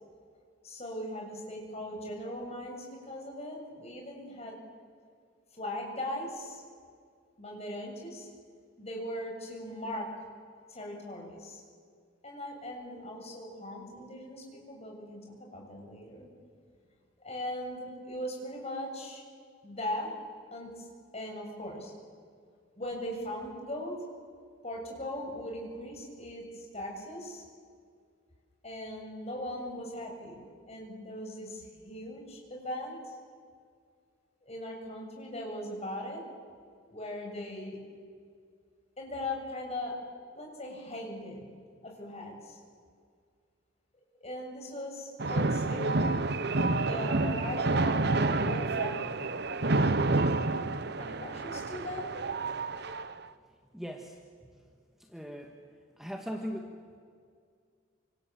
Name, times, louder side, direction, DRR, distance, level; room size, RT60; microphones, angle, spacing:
voice 1, 0.6-4.6 5.5-6.6 7.4-8.3 8.8-10.1 10.7-11.6 12.2-16.3 17.2-19.2 19.6-20.1 20.5-20.9 21.1-21.9 22.8-24.0 24.6-27.4 28.6-30.4 30.7-33.2 34.4-36.2 36.9-37.8 39.0-40.0 40.4-41.5 41.8-42.6 44.2-46.2 46.7-49.3 49.6-50.4 51.0-52.1, left 1 dB, 30° left, 1 dB, 7.2 m, -39 dB
sound 1, 45.2-53.2, right 3 dB, 55° right, 1.0 m, -29 dB
voice 2, 53.7-54.2 54.4-54.5 55.0-55.6 56.0-57.0, equal, ahead, 2 dB, 1.7 m, -40 dB
29.0 x 27.0 x 7.7 m, 2.1 s
head